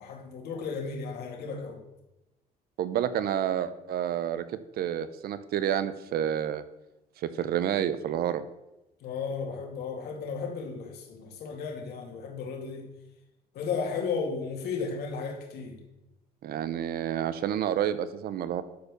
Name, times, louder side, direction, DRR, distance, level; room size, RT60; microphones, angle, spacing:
voice 1, 0.0-1.8 9.0-12.9 13.5-15.8, left 5 dB, 70° left, 1 dB, 2.5 m, -34 dB
voice 2, 2.8-4.4 4.8-6.6 7.2-8.5 16.4-18.6, right 10 dB, 65° right, 13 dB, 0.8 m, -29 dB
12.0 x 4.5 x 6.6 m, 0.95 s
cardioid pair, 110°, 17 cm